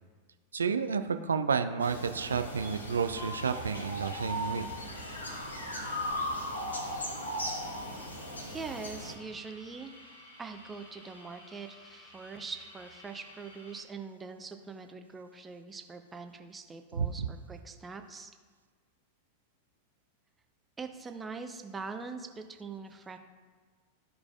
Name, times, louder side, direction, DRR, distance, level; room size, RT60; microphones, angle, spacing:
voice 1, 0.5-4.7 16.9-17.1, right 6 dB, 70° right, 10 dB, 0.4 m, -30 dB
sound 1, 1.8-9.1, equal, 75° left, 1.0 m, -37 dB
sound 2, 2.2-13.8, left 1 dB, 60° left, 1.3 m, -54 dB
voice 2, 8.2-9.9 10.4-18.3 20.8-23.2, right 4 dB, 15° right, 6 dB, 0.6 m, -43 dB
13.5 x 4.7 x 2.4 m, 1.5 s
figure-of-eight pair, 90°, 0 cm